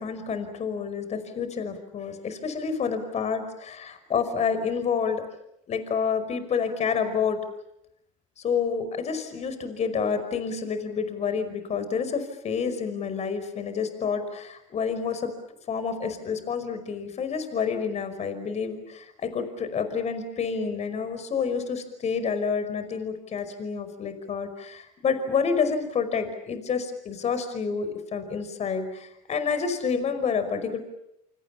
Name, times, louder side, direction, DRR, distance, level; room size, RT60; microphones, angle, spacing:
voice 1, 0.0-5.2 5.7-7.4 8.4-15.3 15.7-30.8, left 6 dB, 40° left, 10 dB, 5.3 m, -29 dB
28.5 x 27.0 x 7.2 m, 0.81 s
supercardioid pair, 90°, 17 cm